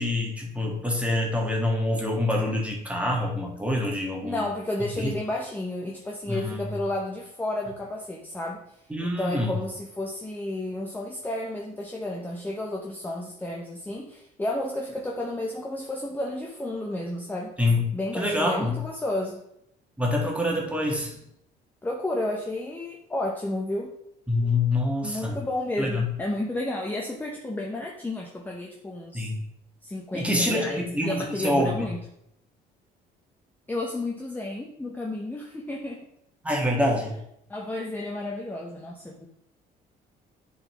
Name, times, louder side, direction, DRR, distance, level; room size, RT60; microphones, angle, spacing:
voice 1, 0.0-4.5 4.9-5.1 6.3-6.8 8.9-9.5 17.6-17.8 18.1-18.8 20.0-21.2 24.3-25.4 25.8-26.1 29.1-29.4 30.1-31.9 36.4-37.1, left 1 dB, 5° right, -1 dB, 1.7 m, -26 dB
voice 2, 4.2-17.5 17.9-19.4 21.8-23.9 25.0-29.3 29.8-32.0 33.7-36.1 37.5-39.3, left 1 dB, 10° left, -1 dB, 0.8 m, -32 dB
10.0 x 4.1 x 3.0 m, 0.77 s
cardioid pair, 110°, 17 cm